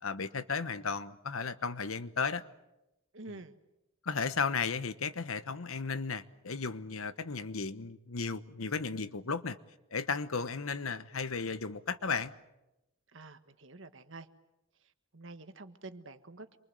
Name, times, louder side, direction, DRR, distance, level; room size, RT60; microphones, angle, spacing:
voice 1, 0.0-2.4 3.3-3.4 4.0-9.6 9.9-12.3, left 5 dB, 85° left, 1.1 m, -34 dB
voice 2, 3.1-3.5 13.1-14.3 15.1-16.6, right 2 dB, 70° right, 1.5 m, -48 dB
27.5 x 24.0 x 7.8 m
head